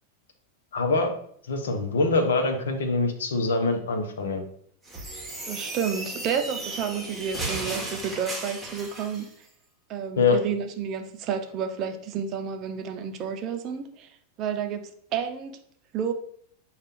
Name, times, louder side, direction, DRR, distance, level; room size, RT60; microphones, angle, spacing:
voice 1, 0.7-1.1 1.5-4.4 10.2-10.4, left 3 dB, 65° left, 5 dB, 0.7 m, -24 dB
sound 1, 4.9-9.3, right 2 dB, 5° right, 1.1 m, -35 dB
voice 2, 5.5-9.3 9.9-14.1 14.4-15.6 15.9-16.1, right 7 dB, 35° right, 6 dB, 0.6 m, -30 dB
6.5 x 2.4 x 3.5 m, 0.62 s
figure-of-eight pair, 90°, 0 cm